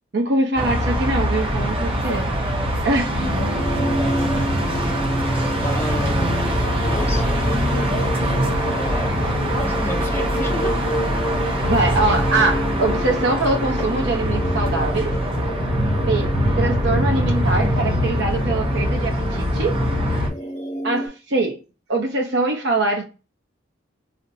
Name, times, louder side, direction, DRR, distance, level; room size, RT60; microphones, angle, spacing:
voice 1, 0.1-2.3 2.8-3.3 11.4-15.1 16.1-19.8 20.8-21.6 21.9-23.0, right 2 dB, 60° right, 0.7 m, -23 dB
sound 1, 0.5-20.3, equal, 25° right, 0.7 m, -22 dB
sound 2, 3.3-21.1, equal, 35° left, 0.8 m, -30 dB
voice 2, 5.6-6.4 6.8-7.4 8.6-9.1 9.6-11.0, left 1 dB, 15° left, 0.5 m, -31 dB
4.2 x 2.1 x 2.6 m
head